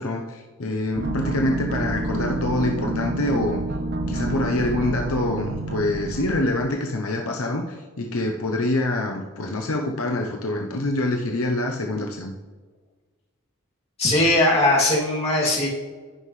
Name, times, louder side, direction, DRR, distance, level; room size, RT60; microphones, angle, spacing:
voice 1, 0.0-3.6 4.1-12.3, left 2 dB, 75° left, 2 dB, 0.9 m, -25 dB
sound 1, 0.9-6.4, right 2 dB, 50° right, 0.8 m, -28 dB
voice 2, 14.0-15.7, left 1 dB, 30° left, -5 dB, 2.6 m, -19 dB
15.0 x 5.7 x 3.2 m, 1.4 s
head